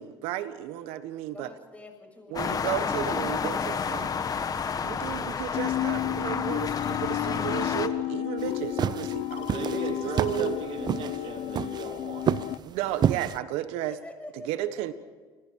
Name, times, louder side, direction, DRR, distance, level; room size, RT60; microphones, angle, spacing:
voice 1, 0.0-1.5 2.3-4.1 4.8-10.5 12.6-14.0 14.5-14.9, right 12 dB, 80° right, 12 dB, 1.5 m, -33 dB
voice 2, 1.3-2.8 13.8-14.7, left 2 dB, 15° left, 4 dB, 6.6 m, -47 dB
sound 1, 2.4-7.9, left 6 dB, 40° left, 1.5 m, -30 dB
sound 2, 5.5-12.6, left 13 dB, 70° left, 1.1 m, -32 dB
sound 3, 8.4-13.4, right 8 dB, 45° right, 0.7 m, -29 dB
voice 3, 9.5-12.3, right 6 dB, 65° right, 3 dB, 3.6 m, -38 dB
29.0 x 20.5 x 4.8 m, 1.5 s
supercardioid pair, 85°, 10 cm